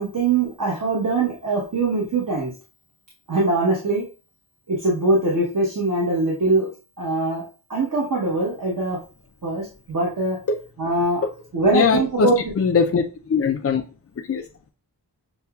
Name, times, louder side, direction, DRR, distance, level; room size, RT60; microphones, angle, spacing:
voice 1, 0.0-2.5 3.3-4.0 4.7-6.7 7.0-7.4 7.7-9.0 9.4-10.4 10.8-11.2 11.5-12.4, right 2 dB, 55° right, 1.2 m, -22 dB
voice 2, 11.7-12.3 12.6-13.8 14.3-14.4, left 5 dB, 40° left, 0.4 m, -20 dB
6.7 x 2.3 x 2.3 m
wide cardioid pair, 105°, 39 cm